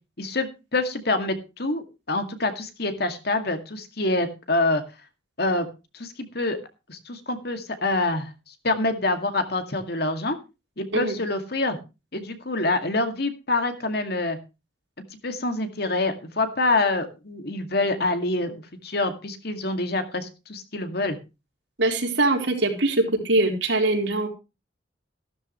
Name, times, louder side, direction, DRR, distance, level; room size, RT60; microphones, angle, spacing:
voice 1, 0.2-4.8 5.4-5.7 5.9-6.6 6.9-8.3 8.6-10.4 10.8-11.8 12.1-14.4 15.2-21.2, left 2 dB, 60° left, 7 dB, 2.2 m, -26 dB
voice 2, 21.8-24.3, right 2 dB, 80° right, 2 dB, 4.2 m, -22 dB
15.0 x 12.5 x 3.1 m, 0.28 s
head